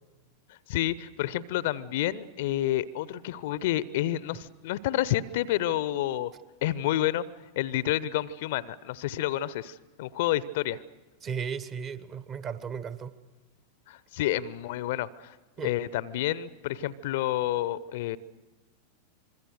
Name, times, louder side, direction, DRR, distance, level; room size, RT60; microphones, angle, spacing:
voice 1, 0.5-6.3 6.6-7.2 7.6-10.8 13.9-15.4 15.6-18.2, left 13 dB, 50° left, 20 dB, 0.7 m, -29 dB
voice 2, 11.2-13.1 15.6-15.7, right 7 dB, 30° right, 14 dB, 1.3 m, -35 dB
26.5 x 22.0 x 6.5 m, 1.2 s
figure-of-eight pair, 90°, 0 cm